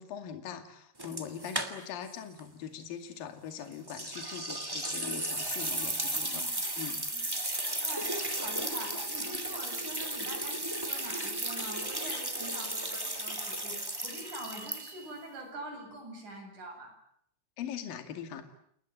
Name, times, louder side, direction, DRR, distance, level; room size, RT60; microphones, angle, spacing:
voice 1, 0.0-6.5 6.8-7.0 17.6-18.4, left 8 dB, 55° left, 7 dB, 3.8 m, -41 dB
sound 1, 1.0-2.1 2.4-2.5 3.9-15.2, right 1 dB, 15° right, 0.7 m, -35 dB
voice 2, 5.8-7.2 7.8-16.9, right 1 dB, 40° right, 3 dB, 9.3 m, -45 dB
29.5 x 21.0 x 8.9 m, 0.68 s
omnidirectional pair, 5.5 m